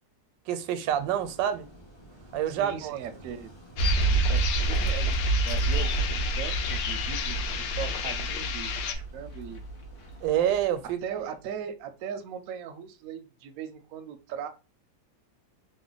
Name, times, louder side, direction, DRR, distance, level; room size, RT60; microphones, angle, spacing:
voice 1, 0.5-1.7 2.3-3.0 10.2-11.2, right 10 dB, 90° right, 1.3 m, -27 dB
sound 1, 0.8-10.7, equal, 35° left, 0.4 m, -51 dB
voice 2, 2.5-3.5 4.0-9.6 11.0-14.5, right 8 dB, 70° right, 0.8 m, -39 dB
sound 2, 3.8-9.0, left 8 dB, 75° left, 1.1 m, -33 dB
sound 3, 3.8-10.3 10.5-10.6, right 3 dB, 55° left, 0.9 m, -28 dB
3.1 x 2.0 x 3.8 m
omnidirectional pair, 2.0 m